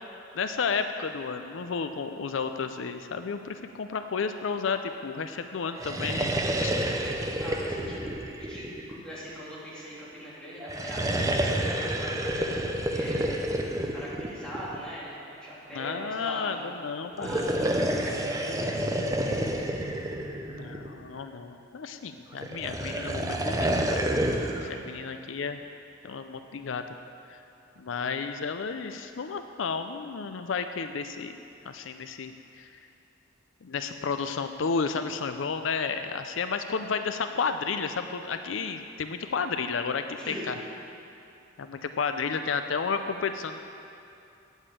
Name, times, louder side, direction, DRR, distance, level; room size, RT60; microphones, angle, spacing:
voice 1, 0.3-6.3 6.6-6.7 15.7-17.3 20.5-24.2 24.6-25.6 26.0-26.8 27.3-27.4 27.8-31.3 31.7-32.7 33.6-40.5 41.6-43.6, left 5 dB, 80° left, 8 dB, 0.5 m, -32 dB
sound 1, 5.7-9.3 10.6-14.9 17.1-21.1 22.4-24.7, right 1 dB, 15° right, 0.7 m, -29 dB
voice 2, 7.4-8.1 8.4-12.5 12.9-13.5 13.9-15.1 15.4-16.7 17.2-19.4 24.7-24.8 40.1-40.5, equal, 5° left, -9 dB, 3.0 m, -41 dB
8.8 x 8.1 x 8.5 m, 2.7 s
head